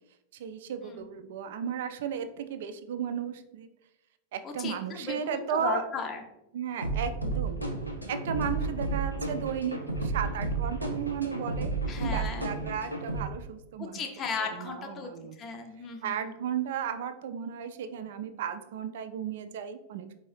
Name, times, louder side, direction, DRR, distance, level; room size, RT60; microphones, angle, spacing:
voice 1, 0.3-3.7 4.3-5.9 6.5-7.6 8.1-11.7 12.0-14.0 14.4-15.4 16.0-20.1, right 8 dB, 55° right, 9 dB, 0.3 m, -34 dB
voice 2, 4.4-6.2 11.9-12.5 13.8-15.1 15.4-16.4, left 4 dB, 30° left, 4 dB, 0.5 m, -36 dB
sound 1, 6.8-13.2, right 3 dB, 90° left, 0.6 m, -32 dB
4.5 x 2.6 x 3.1 m, 0.91 s
figure-of-eight pair, 90°, 0 cm